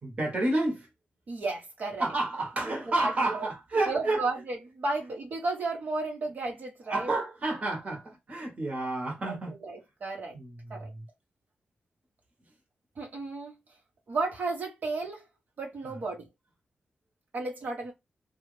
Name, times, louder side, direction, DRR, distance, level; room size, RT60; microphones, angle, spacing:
voice 1, 0.0-0.9 2.0-4.2 6.9-9.6 10.3-11.0, right 2 dB, 40° right, 1.4 m, -30 dB
voice 2, 1.3-2.1 3.0-3.5 3.9-7.1 9.2-10.3 10.7-10.9 13.0-13.6 14.1-15.3 15.6-16.2 17.3-17.9, right 3 dB, 60° right, 1.3 m, -33 dB
3.2 x 2.5 x 3.2 m
wide cardioid pair, 105°, 3 cm